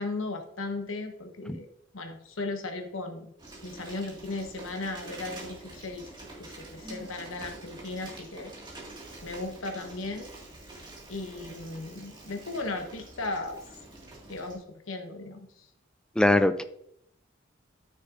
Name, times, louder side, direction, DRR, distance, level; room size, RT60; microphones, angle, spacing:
voice 1, 0.0-1.7 1.9-3.3 3.6-6.1 6.4-8.5 9.2-10.3 11.1-13.6 14.3-15.7, left 2 dB, 90° left, 4 dB, 1.2 m, -36 dB
Bicycle, 3.4-14.6, right 2 dB, 25° right, 2.1 m, -46 dB
voice 2, 16.2-16.6, left 1 dB, 5° left, 10 dB, 0.3 m, -21 dB
13.0 x 6.5 x 2.6 m, 0.77 s
head